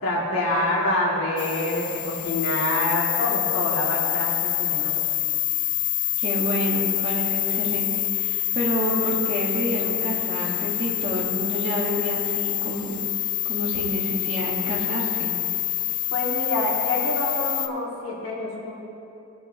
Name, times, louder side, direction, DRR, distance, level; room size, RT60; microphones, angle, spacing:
voice 1, 0.0-5.0 16.1-18.7, left 1 dB, 75° left, -5 dB, 2.3 m, -26 dB
sound 1, 1.4-17.7, left 14 dB, 35° left, 0.4 m, -26 dB
voice 2, 6.2-12.9 13.5-15.3, equal, 25° right, -3 dB, 1.5 m, -28 dB
18.5 x 7.7 x 2.9 m, 2.8 s
head